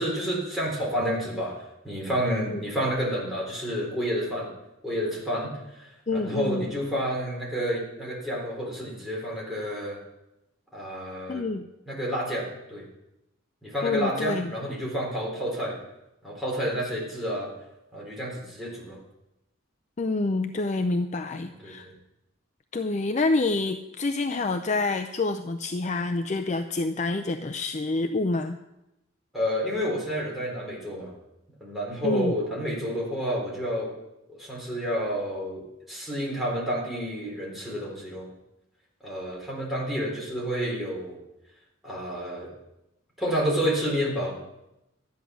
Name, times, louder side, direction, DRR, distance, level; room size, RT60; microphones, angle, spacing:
voice 1, 0.0-1.5 1.8-4.5 4.8-10.0 10.7-11.4 11.9-12.8 13.6-15.8 16.2-17.5 17.9-19.0 21.6-21.7 29.3-31.1 31.6-33.9 34.3-38.3 39.0-41.2 41.8-42.5 43.2-44.4, equal, ahead, -4 dB, 3.8 m, -30 dB
voice 2, 6.1-6.7 11.3-11.7 13.8-14.5 20.0-21.9 22.7-28.6 32.0-32.3, left 3 dB, 35° left, 6 dB, 0.5 m, -27 dB
13.0 x 9.3 x 6.2 m, 0.92 s
head